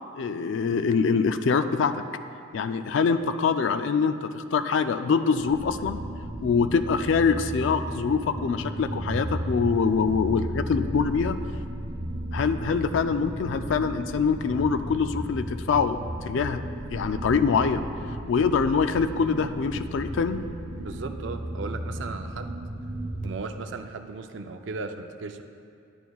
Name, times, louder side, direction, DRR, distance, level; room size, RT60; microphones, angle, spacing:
voice 1, 0.2-2.0 2.5-6.0 6.4-11.4 12.3-16.6 16.9-17.9 18.3-20.4, left 5 dB, 65° left, 10 dB, 0.3 m, -24 dB
sound 1, 5.5-23.2, right 1 dB, 40° right, 0.8 m, -34 dB
voice 2, 20.8-22.6 23.2-25.4, right 4 dB, 60° right, 7 dB, 0.4 m, -36 dB
10.5 x 8.9 x 2.3 m, 2.5 s
head